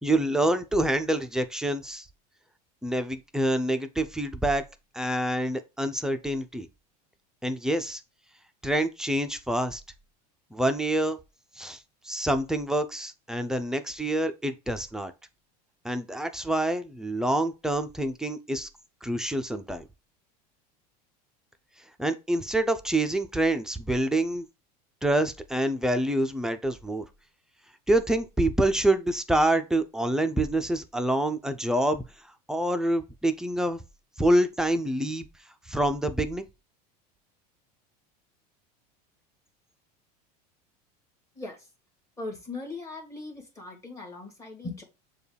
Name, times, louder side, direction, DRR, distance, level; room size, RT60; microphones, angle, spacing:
voice 1, 0.0-2.1 2.8-4.6 4.9-6.7 7.4-8.0 8.6-9.8 10.5-11.2 11.6-11.8 12.0-15.1 15.8-18.7 19.0-19.8 22.0-24.4 25.0-27.0 27.9-32.0 32.5-33.8 34.2-35.3 35.7-36.5, right 1 dB, 5° right, 0.4 m, -26 dB
voice 2, 41.3-41.7 42.2-44.8, left 3 dB, 15° left, 1.7 m, -39 dB
6.9 x 2.3 x 3.3 m
supercardioid pair, 135°, 20 cm